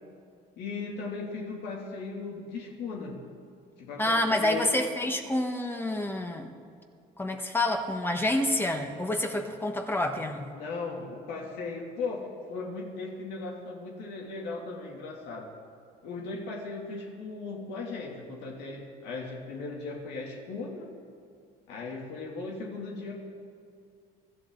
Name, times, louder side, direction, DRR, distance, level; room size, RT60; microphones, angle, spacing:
voice 1, 0.6-3.2 3.8-4.7 10.5-15.5 16.0-20.9 21.7-23.1, left 3 dB, 85° left, -1 dB, 2.8 m, -37 dB
voice 2, 4.0-6.5 7.2-10.5, left 1 dB, 15° left, 4 dB, 1.4 m, -28 dB
24.5 x 13.0 x 4.0 m, 2.3 s
cardioid pair, 110°, 17 cm